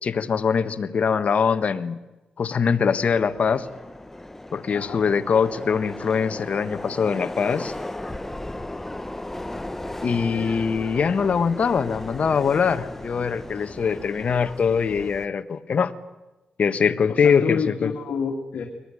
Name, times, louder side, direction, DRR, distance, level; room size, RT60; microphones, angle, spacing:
voice 1, 0.0-2.0 2.4-3.7 4.5-7.7 10.0-15.9 16.6-17.9, left 6 dB, 55° left, 11 dB, 1.4 m, -22 dB
Subway metro underground, 2.9-15.3, left 1 dB, 10° left, 1.1 m, -36 dB
voice 2, 4.7-5.0 17.1-18.6, left 6 dB, 75° left, 2 dB, 2.4 m, -28 dB
24.0 x 19.0 x 9.9 m, 1.1 s
cardioid pair, 95°, 3 cm